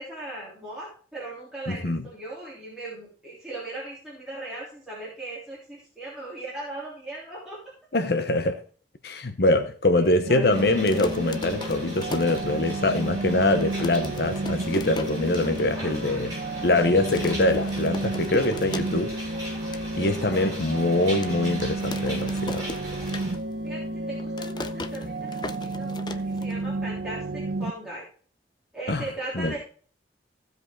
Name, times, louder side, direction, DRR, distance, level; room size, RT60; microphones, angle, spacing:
voice 1, 0.0-7.6 10.0-10.7 15.7-16.7 20.2-20.6 23.6-28.0 28.7-29.6, right 2 dB, 5° right, 3.2 m, -39 dB
voice 2, 1.7-2.0 7.9-8.6 9.0-16.3 16.6-19.1 20.0-22.7 28.9-29.0 29.4-29.5, left 2 dB, 65° left, 0.8 m, -24 dB
sound 1, 10.3-27.7, right 2 dB, 70° right, 0.7 m, -32 dB
sound 2, 10.5-23.3, equal, 20° right, 6.2 m, -40 dB
sound 3, 10.7-13.0 13.3-13.4 13.6-15.7 16.0-16.1 16.3-16.7 17.1-19.2 19.5-19.9 20.4-20.5 21.2-23.7 23.9-26.9, left 2 dB, 25° left, 0.5 m, -38 dB
15.5 x 5.3 x 4.5 m
head